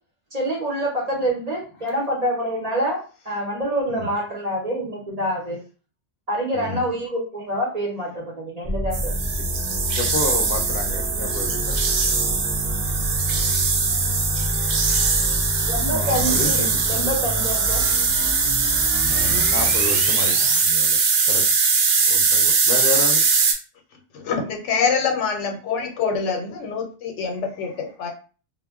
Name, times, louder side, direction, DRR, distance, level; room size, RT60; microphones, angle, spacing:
voice 1, 0.3-5.6 6.3-9.1 15.7-16.6 16.9-17.9, equal, 40° right, -2 dB, 0.7 m, -26 dB
voice 2, 6.5-6.9 10.0-11.9 15.8-17.1 19.1-21.0 21.2-21.4 22.1-23.2, left 3 dB, 60° left, 2 dB, 0.7 m, -30 dB
sound 1, 8.7-20.6, equal, 10° right, 0.5 m, -29 dB
sound 2, 8.9-23.5, right 5 dB, 75° right, 0.9 m, -21 dB
voice 3, 24.1-28.1, left 5 dB, 90° left, 2 dB, 1.0 m, -25 dB
2.2 x 2.1 x 3.4 m, 0.37 s
omnidirectional pair, 1.2 m